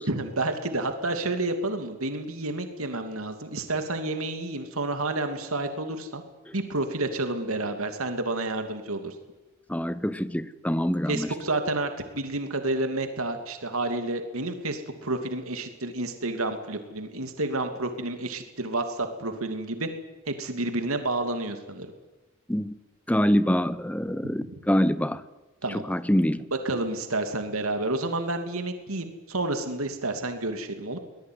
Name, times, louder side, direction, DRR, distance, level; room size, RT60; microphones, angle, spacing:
voice 1, 0.1-6.2 6.5-9.2 11.1-11.9 12.1-19.9 20.3-21.9 24.4-24.5 25.6-25.8 26.6-31.0, right 2 dB, 90° right, 6 dB, 2.8 m, -30 dB
voice 2, 9.7-11.3 22.5-22.8 23.1-25.2 25.7-26.4, equal, 5° left, 15 dB, 0.9 m, -25 dB
24.0 x 19.5 x 9.6 m, 1.1 s
head